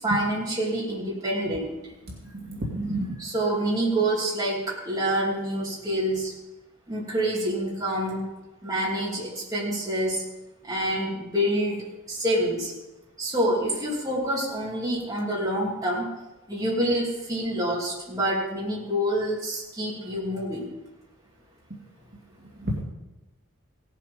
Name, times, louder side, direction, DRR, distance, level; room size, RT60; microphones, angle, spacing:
voice 1, 0.0-1.7 3.2-6.3 6.9-8.3 8.6-10.2 10.7-12.7 13.2-16.1 16.5-20.7, right 1 dB, 15° right, -5 dB, 2.9 m, -27 dB
voice 2, 2.5-3.1 22.6-22.8, right 1 dB, 50° right, -3 dB, 2.2 m, -29 dB
17.0 x 7.6 x 5.2 m, 1.0 s
head